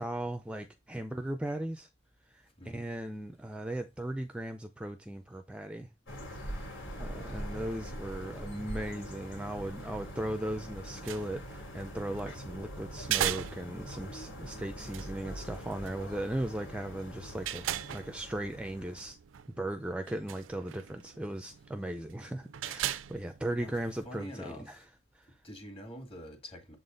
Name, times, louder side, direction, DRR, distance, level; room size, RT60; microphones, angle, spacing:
voice 1, 0.0-1.9 2.3-5.9 6.9-17.6 17.9-19.2 19.5-24.8 25.1-25.4, right 1 dB, 5° right, 0.4 m, -37 dB
sound 1, 6.1-19.1, equal, 85° left, 3.1 m, -43 dB
voice 2, 7.3-7.6 23.5-23.8 24.0-24.9 25.4-26.8, equal, 30° left, 1.9 m, -46 dB
sound 2, 10.8-24.3, right 11 dB, 90° right, 0.4 m, -40 dB
7.4 x 4.0 x 3.8 m
head